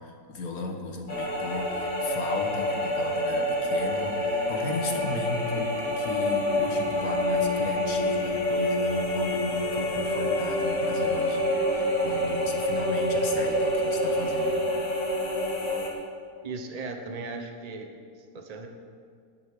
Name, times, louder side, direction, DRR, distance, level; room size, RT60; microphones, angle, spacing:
voice 1, 0.0-14.6, left 3 dB, 65° left, 3 dB, 1.8 m, -36 dB
sound 1, 1.1-15.9, left 1 dB, 40° left, 2.7 m, -27 dB
voice 2, 16.4-17.9 18.2-18.7, right 3 dB, 30° right, 4 dB, 1.0 m, -37 dB
10.5 x 8.2 x 8.5 m, 2.2 s
omnidirectional pair, 1.7 m